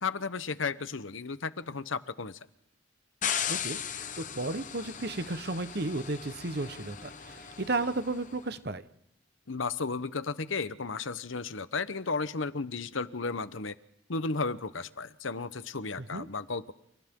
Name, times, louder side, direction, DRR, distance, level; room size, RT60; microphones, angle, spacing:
voice 1, 0.0-2.4 9.5-13.7 14.1-16.7, left 4 dB, 80° left, 14 dB, 1.0 m, -34 dB
sound 1, 3.2-8.3, left 8 dB, 40° left, 1.0 m, -37 dB
voice 2, 3.5-8.8 16.0-16.3, right 2 dB, 55° right, 11 dB, 1.1 m, -34 dB
30.0 x 29.5 x 3.8 m, 0.79 s
head